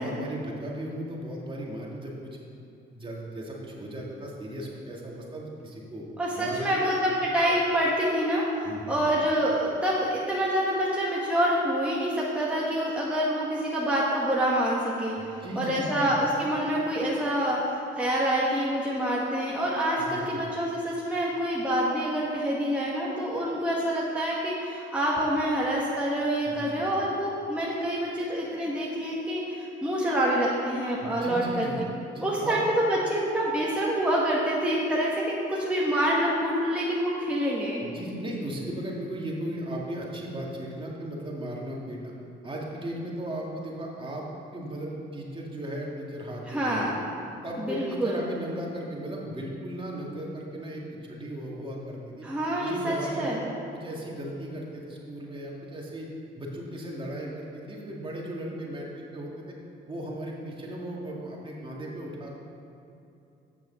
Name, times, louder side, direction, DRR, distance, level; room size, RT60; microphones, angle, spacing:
voice 1, 0.0-2.4 2.9-6.0 6.4-6.9 8.6-9.1 15.2-16.2 20.0-20.4 26.5-26.9 31.0-31.8 32.1-32.6 37.8-42.1 42.4-46.9 47.4-52.3 52.6-53.4 53.7-56.1 56.4-59.6 59.9-62.4, right 1 dB, 25° right, -3 dB, 2.1 m, -36 dB
voice 2, 6.2-31.7 32.2-37.8 46.5-46.9 47.6-48.1 52.2-53.4, equal, 5° right, -6 dB, 1.5 m, -27 dB
8.5 x 6.8 x 6.9 m, 2.7 s
cardioid pair, 90°, 20 cm